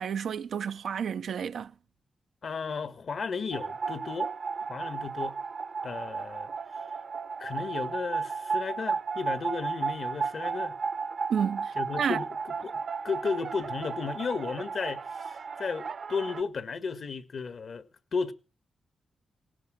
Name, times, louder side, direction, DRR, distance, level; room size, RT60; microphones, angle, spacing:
voice 1, 0.0-1.7 11.3-12.2, right 7 dB, 75° right, 0.7 m, -31 dB
voice 2, 2.4-4.3 4.7-5.4 5.8-6.5 7.4-10.8 11.8-12.3 12.6-17.9 18.1-18.3, left 5 dB, 60° left, 1.5 m, -34 dB
sound 1, 3.5-16.4, right 5 dB, 60° right, 1.1 m, -34 dB
18.0 x 17.5 x 3.7 m
cardioid pair, 75°, 0 cm